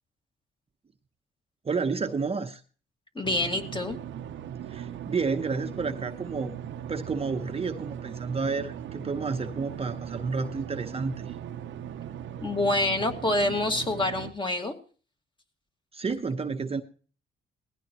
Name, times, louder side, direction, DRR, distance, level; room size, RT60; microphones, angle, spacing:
voice 1, 1.6-2.6 4.7-6.6 6.9-11.3 15.9-16.8, right 4 dB, 30° right, 7 dB, 0.9 m, -30 dB
voice 2, 3.2-4.0 12.4-14.7, left 2 dB, 25° left, 4 dB, 2.0 m, -27 dB
sound 1, 3.2-14.3, right 9 dB, 70° right, 0.8 m, -39 dB
19.0 x 15.5 x 3.0 m, 0.40 s
cardioid pair, 90°, 20 cm